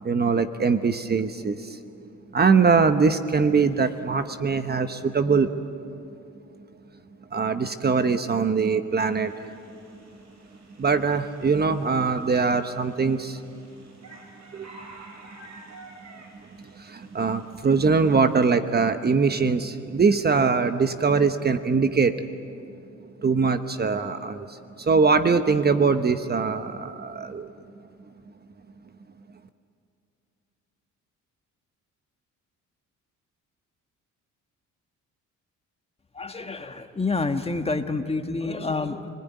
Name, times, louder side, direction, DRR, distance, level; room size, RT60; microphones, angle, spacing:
voice 1, 0.0-1.8 2.3-5.5 7.3-9.3 10.8-13.4 14.5-14.7 16.6-22.1 23.2-27.5, right 5 dB, 35° right, 9 dB, 1.1 m, -22 dB
sound 1, 9.1-18.6, right 2 dB, 65° right, 5.5 m, -51 dB
voice 2, 36.1-39.1, left 3 dB, 20° left, 6 dB, 1.7 m, -28 dB
29.0 x 20.0 x 9.6 m, 2.6 s
cardioid pair, 90°, 30 cm